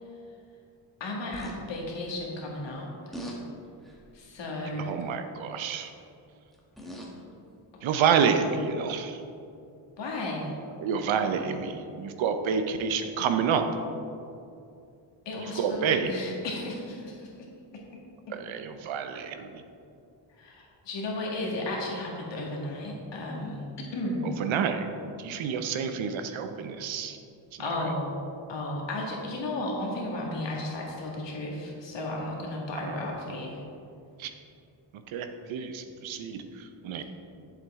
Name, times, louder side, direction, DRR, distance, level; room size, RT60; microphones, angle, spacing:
voice 1, 1.0-3.2 4.1-5.0 7.7-7.9 10.0-10.6 15.3-15.8 16.1-17.5 17.7-17.8 18.3-18.4 20.3-24.3 27.6-28.1 28.5-33.6, left 2 dB, 65° left, -2 dB, 1.9 m, -34 dB
sound 1, 1.3-1.6 3.1-3.4 3.8-4.2 5.6-5.9 6.5-7.2 8.1-8.2, right 1 dB, ahead, 1.1 m, -41 dB
voice 2, 4.8-5.9 7.8-9.2 10.8-13.6 15.4-16.1 18.3-19.6 24.2-24.9 25.2-27.2 27.5-27.9 32.8-33.0 34.2-34.3 34.9-37.0, right 6 dB, 80° right, 7 dB, 0.8 m, -29 dB
8.3 x 7.4 x 3.6 m, 2.6 s
cardioid pair, 130°, 46 cm